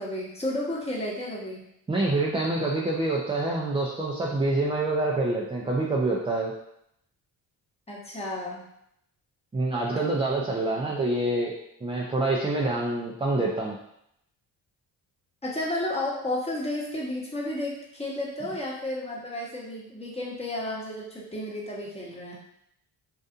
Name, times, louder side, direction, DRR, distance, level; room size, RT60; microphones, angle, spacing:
voice 1, 0.0-1.6 7.9-8.6 15.4-22.3, left 1 dB, 15° left, -5 dB, 0.9 m, -32 dB
voice 2, 1.9-6.5 9.5-11.5 11.8-13.8, right 2 dB, 15° right, -3 dB, 0.3 m, -26 dB
2.5 x 2.4 x 2.4 m, 0.76 s
supercardioid pair, 55°, 46 cm